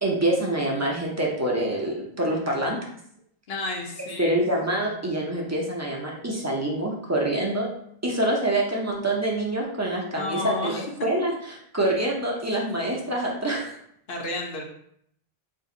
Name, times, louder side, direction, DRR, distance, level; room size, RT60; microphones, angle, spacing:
voice 1, 0.0-2.8 4.2-7.7 8.0-13.8, right 1 dB, 20° right, -2 dB, 0.4 m, -26 dB
voice 2, 3.5-4.4 10.2-10.9 14.1-14.6, left 2 dB, 75° left, 1 dB, 1.0 m, -31 dB
2.7 x 2.5 x 3.8 m, 0.70 s
omnidirectional pair, 1.1 m